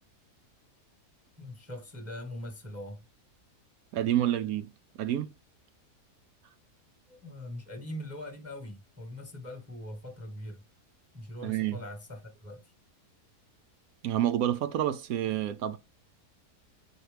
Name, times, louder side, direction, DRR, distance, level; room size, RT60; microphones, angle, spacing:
voice 1, 1.4-3.0 7.1-10.6 11.1-12.7, left 1 dB, 10° right, 1.1 m, -42 dB
voice 2, 3.9-4.7 5.0-5.3 11.4-11.8 14.0-15.8, right 12 dB, 70° right, 1.0 m, -28 dB
9.2 x 4.2 x 3.4 m
omnidirectional pair, 1.7 m